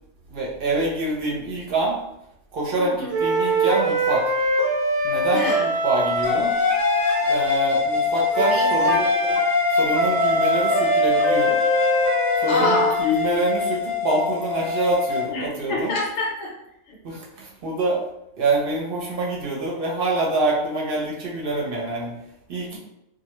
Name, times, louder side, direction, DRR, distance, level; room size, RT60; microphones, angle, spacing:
voice 1, 0.3-2.0 2.5-4.3 5.0-6.5 7.3-9.0 9.7-11.6 12.4-15.9 17.0-18.0 18.4-22.1 22.5-22.8, right 2 dB, 55° right, -3 dB, 0.7 m, -25 dB
voice 2, 2.8-3.2 5.3-5.7 8.4-9.4 12.5-13.0 15.3-16.5 16.9-17.0, left 2 dB, 70° left, -2 dB, 0.9 m, -27 dB
sound 1, 3.1-7.4 8.3-12.9, right 1 dB, 20° right, 0.5 m, -23 dB
sound 2, 6.2-15.3, left 5 dB, 50° left, 0.6 m, -24 dB
2.2 x 2.1 x 2.9 m, 0.82 s
omnidirectional pair, 1.3 m